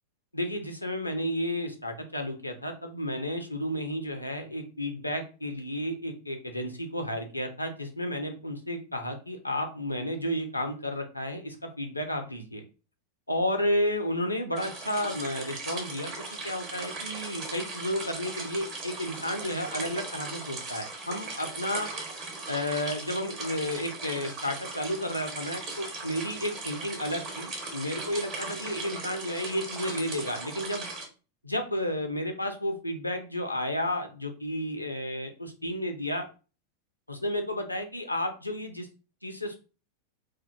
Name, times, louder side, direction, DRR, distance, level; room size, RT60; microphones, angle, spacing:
voice 1, 0.3-12.6 13.3-21.9 22.5-30.9 31.4-36.3 37.1-38.9 39.2-39.6, left 1 dB, 85° left, 5 dB, 0.4 m, -32 dB
sound 1, 14.6-31.1, right 3 dB, 35° right, 0.9 m, -38 dB
2.3 x 2.0 x 2.7 m, 0.34 s
figure-of-eight pair, 90°, 0 cm